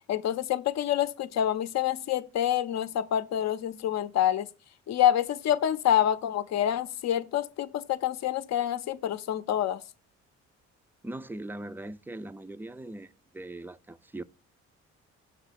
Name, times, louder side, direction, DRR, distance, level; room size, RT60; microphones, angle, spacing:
voice 1, 0.1-4.5 4.9-9.8, left 11 dB, 60° left, 0.6 m, -27 dB
voice 2, 11.0-14.2, right 1 dB, 5° right, 0.3 m, -40 dB
6.8 x 2.9 x 5.7 m
cardioid pair, 90°, 30 cm